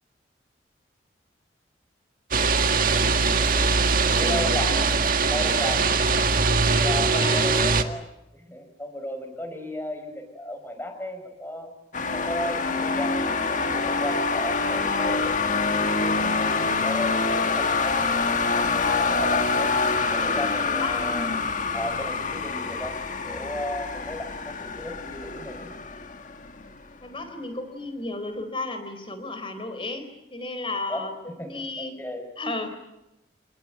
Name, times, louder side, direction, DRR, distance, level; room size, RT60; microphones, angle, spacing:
sound 1, 2.3-7.8, right 4 dB, 50° right, 1.9 m, -21 dB
voice 1, 4.2-4.9 5.3-5.8 6.6-8.0 8.3-11.7 12.1-15.3 15.9-19.7 20.1-21.3 21.7-25.7 30.9-31.0 31.4-32.2, left 1 dB, 10° left, 6 dB, 5.4 m, -35 dB
voice 2, 7.1-7.7 20.7-21.0 27.0-32.0 32.4-32.7, left 2 dB, 30° left, 9 dB, 4.3 m, -33 dB
sound 2, 11.9-26.8, left 4 dB, 45° left, 1.7 m, -26 dB
27.5 x 20.0 x 9.4 m, 0.92 s
head